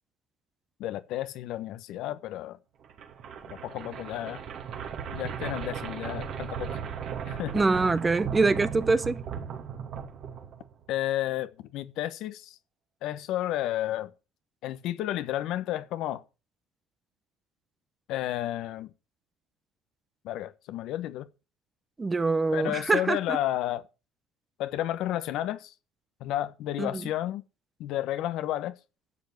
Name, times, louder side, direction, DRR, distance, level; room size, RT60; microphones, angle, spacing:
voice 1, 0.8-2.6 3.6-4.4 5.1-6.8 7.3-7.6 10.9-12.5 13.0-14.1 14.6-16.2 18.1-18.9 20.2-21.3 22.5-23.8 24.6-25.7 26.2-27.4 27.8-28.7, left 13 dB, 65° left, 1.1 m, -32 dB
sound 1, 2.8-10.9, right 7 dB, 55° right, 2.5 m, -37 dB
voice 2, 7.5-9.2 22.0-23.4 26.8-27.0, right 3 dB, 20° right, 0.9 m, -24 dB
12.5 x 7.3 x 6.7 m
supercardioid pair, 90°, 0 cm